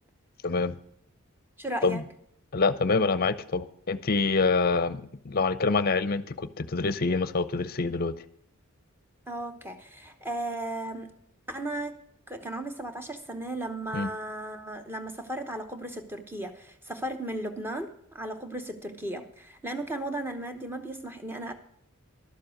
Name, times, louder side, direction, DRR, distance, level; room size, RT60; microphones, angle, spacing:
voice 1, 0.4-0.7 1.8-2.0 2.5-8.1 13.9-14.1, left 4 dB, 45° left, 14 dB, 0.6 m, -26 dB
voice 2, 1.6-2.0 9.3-11.1 11.5-12.0 12.3-21.5, right 1 dB, 10° right, 6 dB, 0.9 m, -35 dB
11.5 x 7.5 x 6.4 m, 0.69 s
head